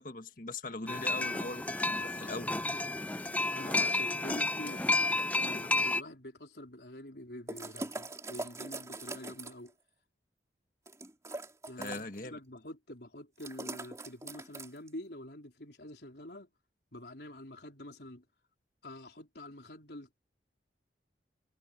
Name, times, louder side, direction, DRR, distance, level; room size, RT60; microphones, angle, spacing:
voice 1, 0.0-2.5 11.8-12.4, left 2 dB, 45° left, 1.7 m, -41 dB
sound 1, 0.9-6.0, left 2 dB, 10° left, 0.5 m, -31 dB
voice 2, 3.5-4.9 5.4-9.7 11.7-16.5 16.9-18.2 18.8-20.1, left 1 dB, 65° left, 4.0 m, -47 dB
sound 2, 7.5-9.7 10.9-12.2 13.4-14.9, right 2 dB, 15° right, 3.0 m, -42 dB
head